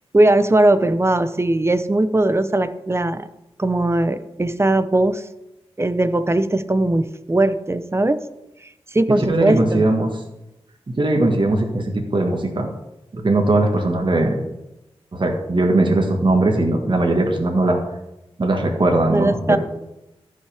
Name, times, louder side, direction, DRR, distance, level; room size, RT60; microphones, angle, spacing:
voice 1, 0.1-3.3 3.6-5.2 5.8-8.2 8.9-9.8 19.1-19.6, right 2 dB, 25° right, 12 dB, 0.8 m, -19 dB
voice 2, 9.3-10.2 10.9-12.7 13.1-14.3 15.1-17.8 18.4-19.6, right 2 dB, 50° right, 2 dB, 1.7 m, -19 dB
14.0 x 5.6 x 3.5 m, 0.93 s
cardioid pair, 45°, 11 cm